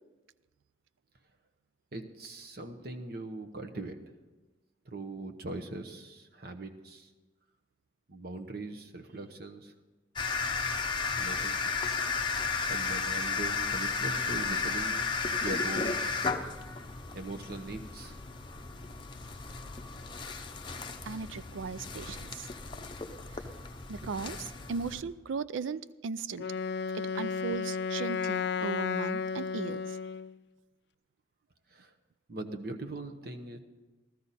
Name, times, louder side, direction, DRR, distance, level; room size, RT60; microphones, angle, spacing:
voice 1, 1.9-4.0 4.8-7.1 8.1-9.7 11.2-12.0 12.7-15.1 15.4-16.1 17.1-18.2 31.7-31.9 32.3-33.6, right 2 dB, 50° right, 6 dB, 0.9 m, -41 dB
sound 1, 10.2-25.0, left 4 dB, 25° left, 0.7 m, -34 dB
voice 2, 21.1-22.5 23.3-23.5 23.9-26.5 26.9-30.0, right 5 dB, 85° right, 16 dB, 0.4 m, -37 dB
Wind instrument woodwind instrument, 26.4-30.4, left 6 dB, 60° left, 0.3 m, -33 dB
15.5 x 13.5 x 4.2 m, 1.2 s
head